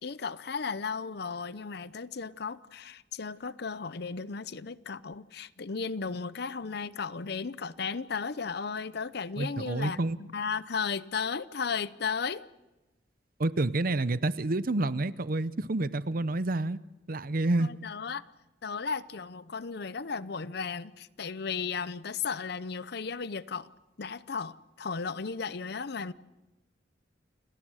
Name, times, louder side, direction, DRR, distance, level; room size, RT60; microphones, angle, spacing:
voice 1, 0.0-12.4 17.6-18.2 18.6-23.7 24.0-26.1, left 5 dB, 60° left, 0.7 m, -35 dB
voice 2, 9.4-10.2 13.4-16.8 17.1-17.7, right 2 dB, 50° right, 0.7 m, -28 dB
29.0 x 18.5 x 6.4 m
head